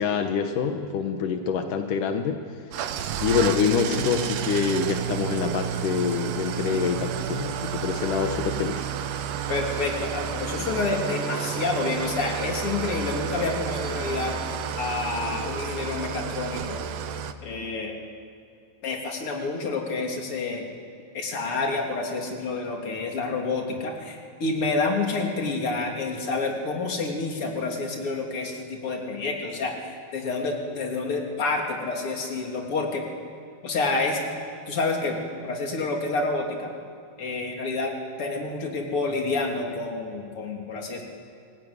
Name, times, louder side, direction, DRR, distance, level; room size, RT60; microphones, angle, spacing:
voice 1, 0.0-2.4 3.2-8.8, left 6 dB, 80° left, 5 dB, 2.8 m, -26 dB
Engine starting / Idling, 2.7-17.3, right 8 dB, 80° right, 2.6 m, -31 dB
voice 2, 9.5-14.4 14.7-16.8 17.4-17.9 18.8-20.6 21.1-33.1 33.6-34.2 34.7-36.7 37.2-41.0, left 3 dB, 45° left, 1 dB, 3.8 m, -28 dB
29.0 x 19.0 x 9.7 m, 2.5 s
omnidirectional pair, 3.7 m